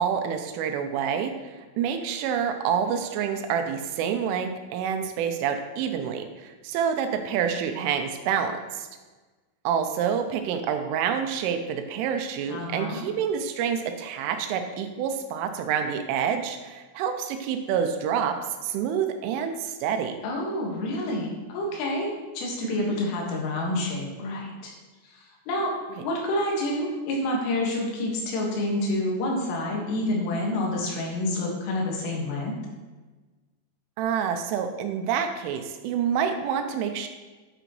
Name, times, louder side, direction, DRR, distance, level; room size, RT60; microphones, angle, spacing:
voice 1, 0.0-8.9 9.6-18.4 18.6-20.2 22.6-23.0 34.0-37.1, right 7 dB, 90° right, 6 dB, 3.2 m, -27 dB
voice 2, 12.5-13.0 20.2-24.7 25.1-25.7 26.0-32.6, left 1 dB, 80° left, -2 dB, 4.2 m, -28 dB
10.0 x 9.0 x 3.1 m, 1.3 s
omnidirectional pair, 5.6 m